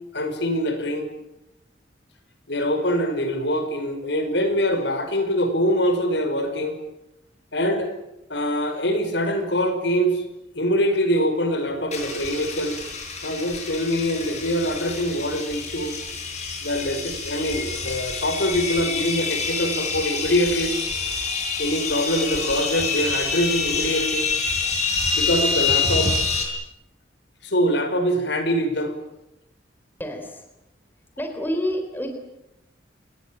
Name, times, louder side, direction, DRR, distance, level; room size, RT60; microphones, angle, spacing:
voice 1, 0.1-1.1 2.5-6.8 7.5-7.9 8.3-10.2 10.6-12.8 13.2-15.9 16.6-20.7 21.6-24.2 25.1-26.1 27.4-28.9, equal, 70° left, 7 dB, 5.3 m, -24 dB
sound 1, 11.9-26.4, left 4 dB, 35° left, 6.8 m, -27 dB
voice 2, 30.0-30.5 31.2-32.1, equal, 10° left, 5 dB, 3.6 m, -28 dB
29.0 x 20.5 x 9.0 m, 0.89 s
head